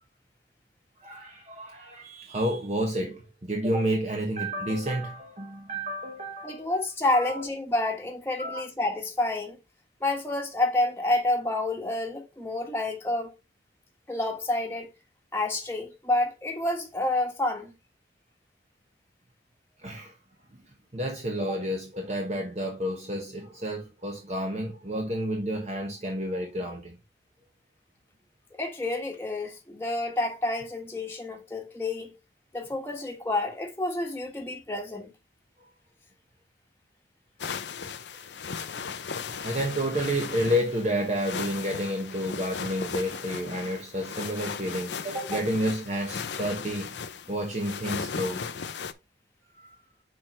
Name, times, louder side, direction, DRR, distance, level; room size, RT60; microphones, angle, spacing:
voice 1, 1.0-6.8 7.1-7.5 8.4-8.7 19.8-20.2 20.6-27.0 35.6-35.7 37.8-38.6 39.4-47.0 47.3-48.5 49.5-49.8, equal, 40° right, 1.1 m, -30 dB
voice 2, 6.4-9.6 10.0-13.3 14.1-14.9 15.3-17.7 28.6-32.1 32.5-35.1 45.3-45.4, left 2 dB, 15° left, 1.3 m, -29 dB
sound 1, 37.4-48.9, left 6 dB, 80° left, 0.6 m, -37 dB
6.4 x 4.6 x 4.3 m
head